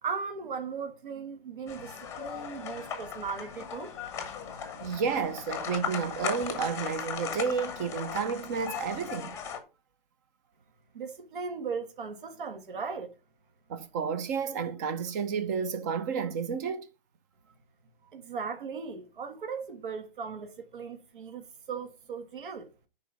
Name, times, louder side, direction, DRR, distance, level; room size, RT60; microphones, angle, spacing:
voice 1, 0.0-3.9 4.8-4.9 10.9-13.1 18.1-22.7, right 5 dB, 60° right, 1.8 m, -37 dB
sound 1, 1.7-9.6, left 7 dB, 10° left, 1.0 m, -37 dB
voice 2, 4.8-9.4 13.7-16.9, right 6 dB, 20° right, 0.6 m, -31 dB
9.9 x 4.2 x 4.9 m
hypercardioid pair, 150°, 29 cm